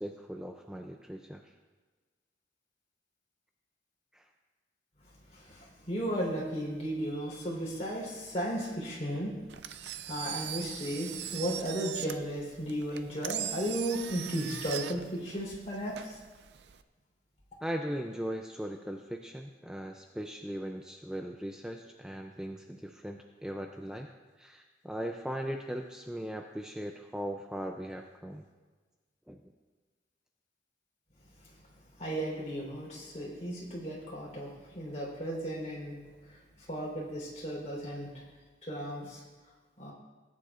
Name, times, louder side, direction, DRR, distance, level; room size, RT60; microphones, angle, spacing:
voice 1, 0.0-1.4 4.1-4.3 17.6-28.4 29.3-29.5, equal, 5° right, 3 dB, 0.4 m, -39 dB
voice 2, 5.3-9.3 10.1-16.1 32.0-36.0 36.7-38.1 38.6-39.2 39.8-39.9, equal, 40° left, -3 dB, 3.7 m, -35 dB
Engine, 9.5-16.8, right 10 dB, 75° right, 0.5 m, -40 dB
18.5 x 9.8 x 2.5 m, 1.3 s
head